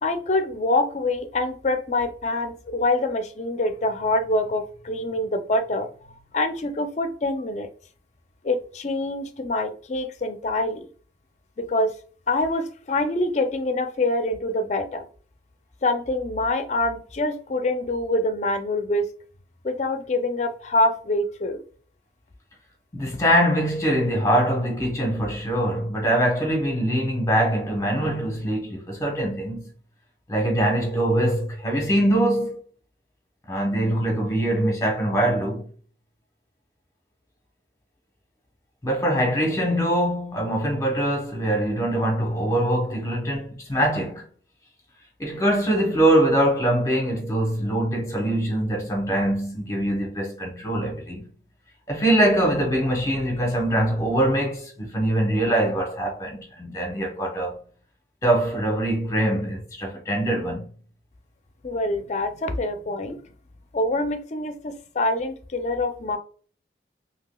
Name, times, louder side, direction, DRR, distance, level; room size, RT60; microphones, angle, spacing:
voice 1, 0.0-7.7 8.4-10.9 11.6-11.9 12.3-15.1 15.8-19.0 19.6-21.6 61.6-63.2 63.7-66.2, left 2 dB, 40° left, 0.4 m, -25 dB
voice 2, 22.9-29.7 30.3-32.6 33.5-35.6 38.8-44.2 45.2-51.3 51.9-57.6 58.2-60.7, right 1 dB, 20° left, 1.0 m, -23 dB
3.8 x 2.8 x 2.2 m
head